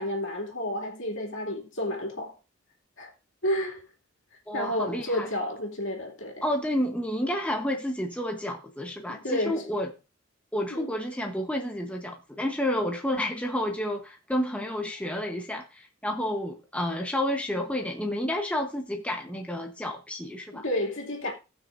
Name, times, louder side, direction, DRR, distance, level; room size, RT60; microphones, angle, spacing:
voice 1, 0.0-2.3 3.0-3.1 3.4-3.8 4.5-6.4 9.1-9.6 10.7-10.9 20.5-21.3, left 1 dB, 65° left, 2.6 m, -31 dB
voice 2, 4.5-5.3 6.4-9.9 10.5-20.6, left 1 dB, 5° left, 0.9 m, -30 dB
18.5 x 6.1 x 2.5 m
head